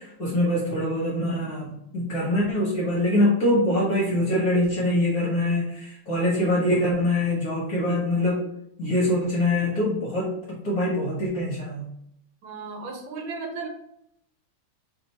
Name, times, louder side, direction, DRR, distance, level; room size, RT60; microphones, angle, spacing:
voice 1, 0.0-8.4 8.8-11.9, left 1 dB, 55° left, -3 dB, 1.1 m, -24 dB
voice 2, 12.4-13.7, right 4 dB, 70° right, 1 dB, 1.5 m, -35 dB
3.0 x 2.8 x 4.0 m, 0.76 s
omnidirectional pair, 2.4 m